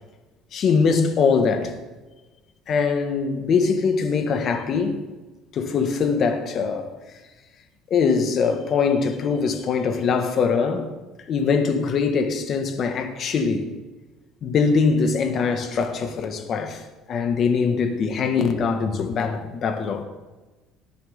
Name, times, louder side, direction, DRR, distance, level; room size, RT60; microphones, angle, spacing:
voice 1, 0.5-1.7 2.7-5.0 5.5-6.9 7.9-10.9 11.3-13.7 14.4-16.8 17.1-20.0, left 5 dB, 45° left, 1.7 m, -22 dB
18.5 x 10.5 x 3.8 m
cardioid pair, 130°, 0 cm